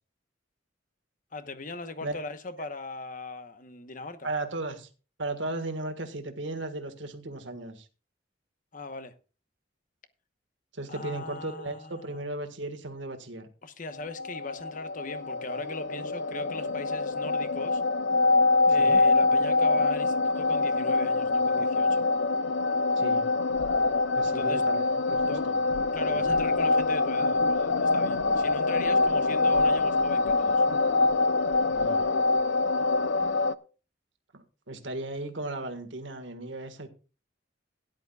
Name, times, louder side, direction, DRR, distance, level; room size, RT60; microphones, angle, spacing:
voice 1, 1.3-4.3 8.7-9.1 10.9-12.2 13.6-17.8 18.7-22.0 24.2-24.6 25.3-25.5 25.9-30.6, left 2 dB, 45° left, 1.1 m, -39 dB
voice 2, 4.2-4.9 5.2-7.9 10.7-13.5 18.8-19.0 23.0-23.2 24.2-25.5 26.1-26.4 31.7-32.0 34.3-36.9, right 2 dB, 80° right, 1.6 m, -36 dB
sound 1, 14.0-33.5, left 3 dB, 85° left, 0.6 m, -25 dB
17.0 x 10.5 x 2.4 m
head